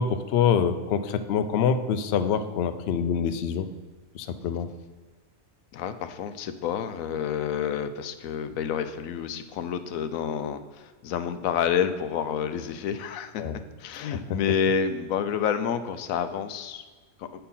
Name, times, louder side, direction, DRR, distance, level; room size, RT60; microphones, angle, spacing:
voice 1, 0.0-3.7 4.1-4.7 13.4-13.6 14.3-14.4, left 7 dB, 65° left, 10 dB, 0.7 m, -25 dB
voice 2, 5.7-16.8 17.2-17.3, left 7 dB, 85° left, 10 dB, 1.0 m, -29 dB
8.8 x 4.3 x 5.5 m, 1.4 s
omnidirectional pair, 1.4 m